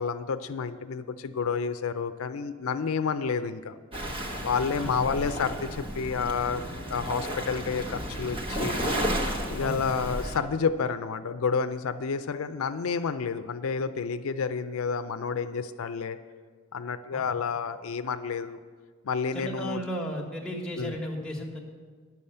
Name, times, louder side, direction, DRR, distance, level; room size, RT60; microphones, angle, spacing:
voice 1, 0.0-3.8 4.4-6.6 6.9-8.8 9.5-16.2 16.7-18.6 19.0-19.8 20.8-21.0, left 5 dB, 85° left, 10 dB, 0.5 m, -30 dB
Waves surf, 3.9-10.4, equal, 25° right, 1.1 m, -33 dB
voice 2, 19.3-21.6, equal, 5° left, -2 dB, 1.4 m, -34 dB
11.0 x 7.1 x 6.6 m, 1.5 s
head